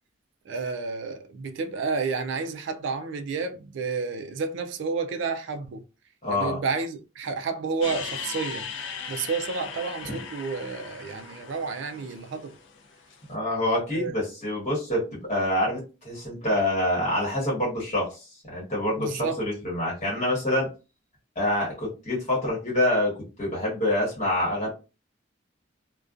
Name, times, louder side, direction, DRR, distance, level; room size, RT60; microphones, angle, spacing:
voice 1, 0.4-5.8 6.3-12.6 13.9-14.2 18.9-19.4, right 4 dB, 65° right, 0.3 m, -31 dB
voice 2, 6.2-6.6 10.1-10.2 13.3-20.7 21.3-24.7, left 1 dB, 35° left, 1.2 m, -26 dB
sound 1, 7.8-13.2, left 6 dB, 65° left, 0.4 m, -38 dB
2.5 x 2.2 x 2.3 m
head